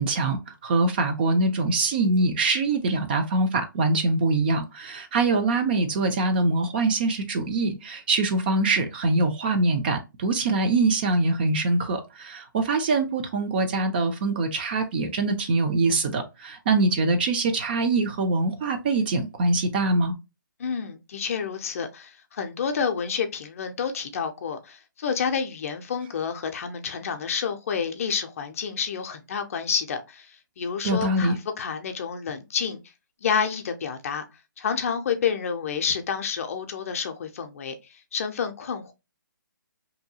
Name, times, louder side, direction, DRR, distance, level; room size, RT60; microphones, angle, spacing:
voice 1, 0.0-20.1 30.8-31.4, right 3 dB, 30° right, 0.4 m, -24 dB
voice 2, 20.6-32.8 33.2-34.3 34.6-38.9, left 6 dB, 40° left, 0.5 m, -29 dB
2.7 x 2.2 x 2.7 m
hypercardioid pair, 155°, 11 cm